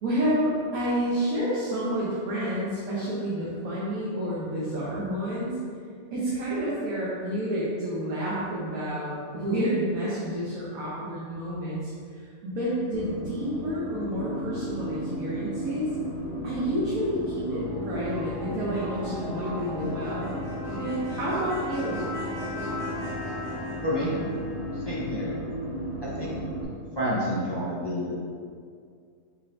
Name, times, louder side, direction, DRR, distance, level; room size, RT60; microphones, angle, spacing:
voice 1, 0.0-5.6 6.1-15.9 16.4-20.5 20.7-22.0, equal, 70° right, -8 dB, 1.3 m, -29 dB
sound 1, 12.9-26.6, equal, 30° right, 1.3 m, -33 dB
voice 2, 23.8-24.1 24.7-25.3 26.0-26.3 26.9-28.1, equal, 40° left, -8 dB, 0.3 m, -29 dB
5.4 x 2.7 x 3.2 m, 2.2 s
omnidirectional pair, 1.6 m